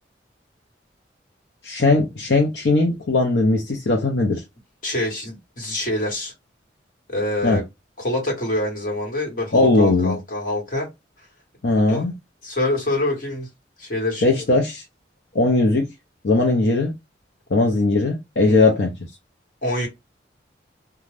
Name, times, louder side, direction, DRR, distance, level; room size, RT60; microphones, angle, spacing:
voice 1, 1.6-4.4 7.4-7.6 9.5-10.2 11.6-12.1 14.2-14.8 15.3-15.9 16.2-17.0 17.5-18.9, left 2 dB, 70° left, 0.6 m, -19 dB
voice 2, 4.8-6.3 7.1-7.6 8.0-10.9 11.9-12.0 12.4-13.5 13.8-14.2 18.5-18.6 19.6-19.9, left 1 dB, 45° left, 1.5 m, -25 dB
2.5 x 2.3 x 3.2 m
head